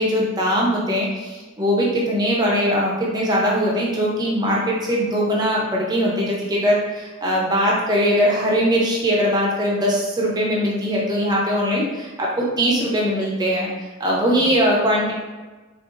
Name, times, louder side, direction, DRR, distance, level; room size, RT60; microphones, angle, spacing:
voice 1, 0.0-13.7 14.0-15.1, equal, 20° right, -4 dB, 0.6 m, -21 dB
3.2 x 2.8 x 2.4 m, 1.3 s
head